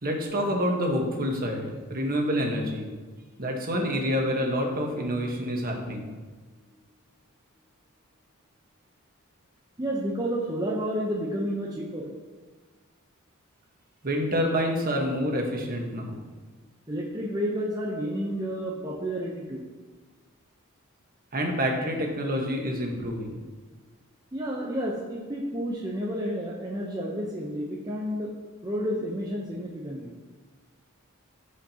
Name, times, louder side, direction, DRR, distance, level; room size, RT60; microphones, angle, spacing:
voice 1, 0.0-2.9 3.4-6.1 14.0-16.2 21.3-23.4, equal, 45° right, 1 dB, 1.3 m, -27 dB
voice 2, 9.8-12.1 16.9-19.7 24.3-28.3 28.6-30.1, equal, 20° right, -3 dB, 0.8 m, -31 dB
14.5 x 5.0 x 2.9 m, 1.4 s
head